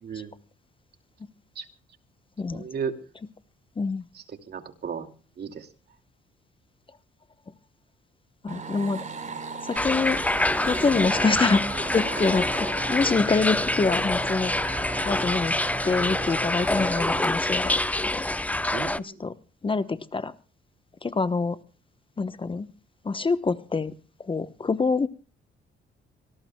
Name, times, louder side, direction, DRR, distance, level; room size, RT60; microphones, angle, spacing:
voice 1, 0.0-0.3 1.6-1.7 2.5-3.0 4.1-5.1 5.4-5.7 18.7-19.2, right 6 dB, 55° right, 6 dB, 2.5 m, -35 dB
voice 2, 8.4-9.1 9.6-10.2 10.7-11.6 11.9-14.8 15.0-15.5 15.8-18.2 19.0-19.3 19.6-20.3 21.0-21.6 22.2-22.7 23.0-23.9 24.2-25.1, left 4 dB, 25° left, 12 dB, 1.0 m, -26 dB
sound 1, 8.5-17.3, right 4 dB, 40° right, 4.5 m, -37 dB
sound 2, 9.8-19.0, left 1 dB, 5° left, 0.7 m, -26 dB
26.0 x 18.5 x 2.3 m, 0.36 s
cardioid pair, 90°, 20 cm